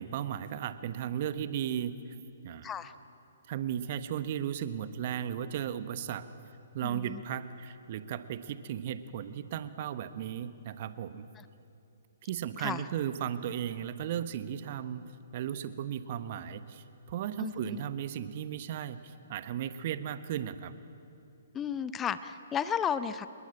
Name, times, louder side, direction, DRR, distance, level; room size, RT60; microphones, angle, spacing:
voice 1, 0.0-1.9 2.4-2.7 3.5-6.2 6.7-11.3 12.2-20.7, right 10 dB, 45° right, 12 dB, 1.2 m, -35 dB
voice 2, 2.6-2.9 6.8-7.2 11.4-11.5 12.6-12.8 17.4-17.8 21.5-23.3, left 8 dB, 15° left, 13 dB, 0.7 m, -34 dB
27.5 x 21.5 x 8.9 m, 2.7 s
figure-of-eight pair, 125°, 0 cm